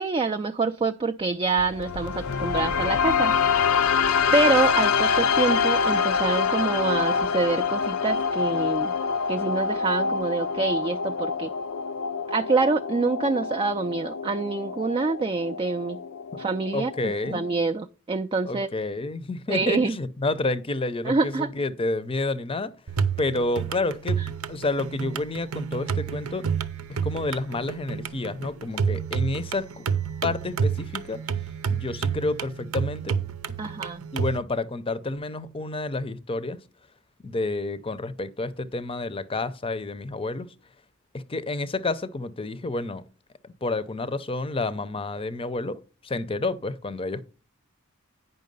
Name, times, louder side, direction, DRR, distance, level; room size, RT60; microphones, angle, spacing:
voice 1, 0.0-3.3 4.3-8.9 9.3-11.5 12.3-16.0 16.4-18.7 19.5-20.0 21.0-21.5 24.2-24.3 33.6-34.0, right 4 dB, 25° right, 0.3 m, -26 dB
sound 1, 1.6-17.6, left 6 dB, 75° left, 0.6 m, -26 dB
voice 2, 16.7-17.4 18.5-22.7 23.2-24.2 24.5-26.5 27.0-29.9 30.2-31.2 31.7-33.2 34.1-36.6 37.2-40.5 41.1-43.0 43.4-47.2, left 2 dB, 25° left, 0.6 m, -29 dB
sound 2, 22.9-34.4, right 6 dB, 85° right, 0.7 m, -29 dB
9.3 x 5.7 x 5.4 m
head